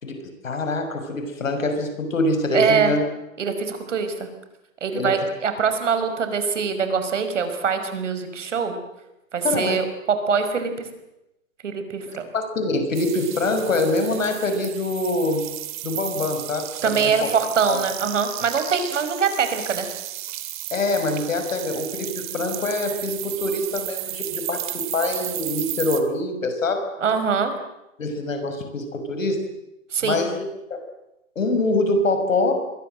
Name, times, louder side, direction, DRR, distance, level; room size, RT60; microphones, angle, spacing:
voice 1, 0.0-3.0 4.9-5.2 9.4-9.8 12.1-15.4 15.8-17.3 17.7-17.8 20.7-26.8 28.0-29.4 30.0-30.4 30.7-30.8 31.4-32.5, left 2 dB, 70° left, 6 dB, 6.0 m, -24 dB
voice 2, 2.5-2.9 3.4-4.3 4.8-8.8 9.3-10.9 11.6-12.2 16.8-19.9 27.0-27.5 29.9-30.3, right 6 dB, 65° right, 8 dB, 5.5 m, -23 dB
sound 1, 12.9-26.0, right 14 dB, 35° right, 2.7 m, -33 dB
28.5 x 23.0 x 7.8 m, 0.90 s
hypercardioid pair, 140°, 40 cm